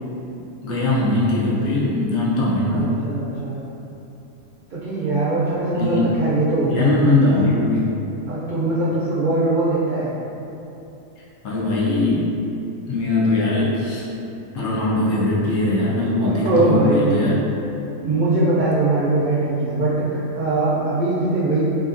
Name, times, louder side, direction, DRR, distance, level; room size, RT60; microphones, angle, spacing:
voice 1, 0.3-3.0 5.7-6.1 6.6-7.9 11.4-12.3 12.9-14.0 14.5-17.4 18.5-18.6, left 2 dB, 80° left, -6 dB, 1.1 m, -20 dB
voice 2, 2.7-3.6 4.7-6.9 7.3-7.5 8.3-10.1 16.2-17.2 18.0-21.6, right 2 dB, 70° right, -10 dB, 0.4 m, -21 dB
2.9 x 2.5 x 2.5 m, 2.9 s
omnidirectional pair, 1.3 m